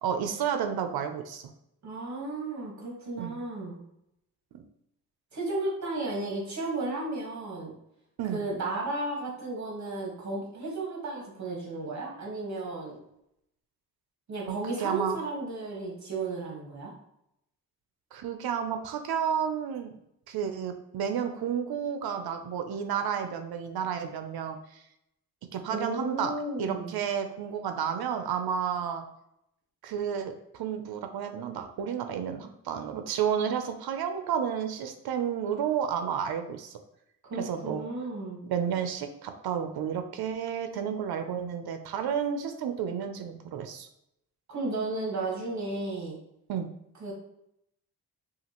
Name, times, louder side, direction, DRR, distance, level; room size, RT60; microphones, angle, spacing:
voice 1, 0.0-1.5 3.2-3.3 4.5-4.6 8.2-8.4 14.5-15.2 18.1-20.0 20.3-24.8 25.5-26.3 26.6-29.0 29.8-36.8 37.4-37.8 38.5-43.9 46.5-46.7, right 8 dB, 90° right, 7 dB, 0.6 m, -31 dB
voice 2, 1.8-3.8 5.3-7.7 8.3-13.0 14.3-16.9 25.7-26.9 37.2-38.4 44.5-46.2 47.0-47.1, right 2 dB, 50° right, -2 dB, 1.5 m, -34 dB
5.6 x 2.5 x 2.9 m, 0.79 s
wide cardioid pair, 145°, 37 cm